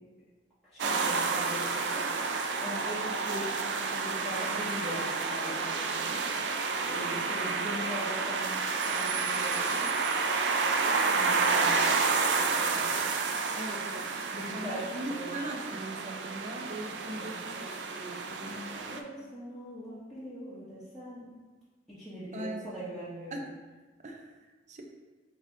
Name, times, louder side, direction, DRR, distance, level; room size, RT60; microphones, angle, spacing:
voice 1, 0.7-2.0 2.6-6.2 6.9-8.6 8.8-9.9 11.0-11.9 12.3-13.0 14.3-15.4 17.1-17.3 18.2-21.2 21.9-23.3, equal, ahead, -13 dB, 0.9 m, -41 dB
sound 1, 0.8-19.0, right 4 dB, 90° right, 0.4 m, -30 dB
voice 2, 13.6-18.2 18.4-18.6 22.3-22.8 23.3-23.5 24.0-24.3 24.7-24.8, right 1 dB, 45° right, 2 dB, 0.6 m, -40 dB
6.5 x 2.7 x 2.7 m, 1.3 s
head